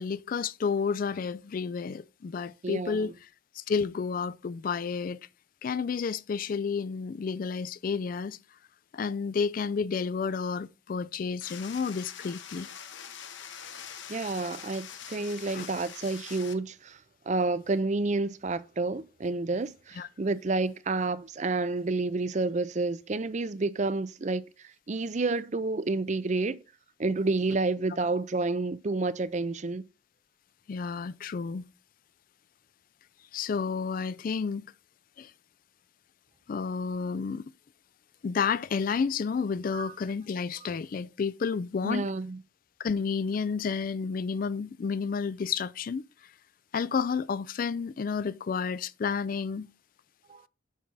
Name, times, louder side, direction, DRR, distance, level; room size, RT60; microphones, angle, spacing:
voice 1, 0.0-3.1 3.5-5.2 5.6-8.4 8.9-12.7 15.5-15.7 20.0-20.1 30.7-31.6 33.3-34.7 35.2-35.3 36.5-37.5 38.2-42.1 42.8-46.1 46.7-49.7, left 5 dB, 45° left, 0.3 m, -31 dB
voice 2, 2.6-3.1 14.1-17.0 17.3-24.4 24.9-26.6 27.0-29.8 39.7-39.9 41.8-42.4 50.3-50.4, right 3 dB, 35° right, 0.5 m, -29 dB
sound 1, 11.4-16.5, left 8 dB, 65° left, 1.0 m, -44 dB
7.4 x 6.0 x 4.0 m
head